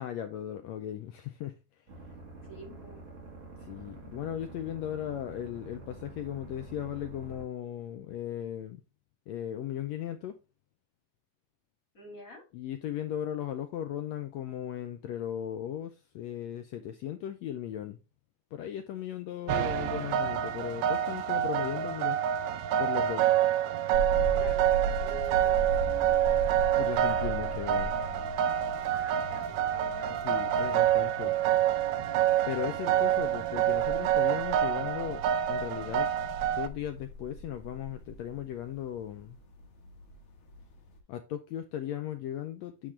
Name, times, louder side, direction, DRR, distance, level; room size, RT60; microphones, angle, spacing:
voice 1, 0.0-1.6 3.6-8.8 9.3-10.3 12.5-18.0 18.5-22.2 22.8-23.3 26.7-27.9 30.2-31.3 32.2-36.1 36.5-39.4 41.1-42.9, left 10 dB, 85° left, 1.5 m, -37 dB
sound 1, 1.9-7.4, right 2 dB, 45° right, 2.3 m, -47 dB
voice 2, 2.4-3.1 11.9-12.4 19.4-19.9 24.3-24.7 25.0-26.4 28.9-30.2 32.9-33.0, left 1 dB, 30° left, 1.9 m, -49 dB
sound 2, 19.5-36.7, right 11 dB, 75° right, 1.7 m, -27 dB
sound 3, 23.9-41.0, equal, 50° left, 1.8 m, -40 dB
10.0 x 3.7 x 3.3 m
omnidirectional pair, 3.8 m